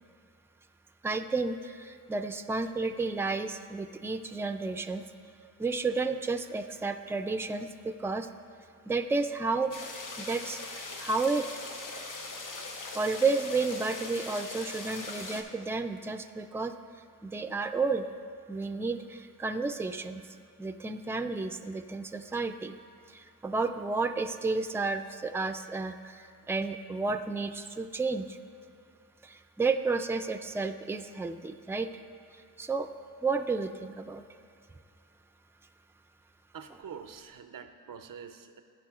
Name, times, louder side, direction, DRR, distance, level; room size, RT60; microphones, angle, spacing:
voice 1, 1.0-5.0 5.6-8.3 8.9-9.7 10.2-11.5 12.9-16.7 17.2-18.1 18.5-20.2 20.6-22.7 23.1-28.4 29.2-31.9 32.6-32.9 33.2-34.2, right 3 dB, 10° right, 7 dB, 0.4 m, -31 dB
sound 1, 9.7-15.4, left 3 dB, 70° left, 0.8 m, -40 dB
voice 2, 36.5-38.6, right 7 dB, 80° right, 8 dB, 0.5 m, -45 dB
14.5 x 5.4 x 2.4 m, 2.4 s
cardioid pair, 45°, 33 cm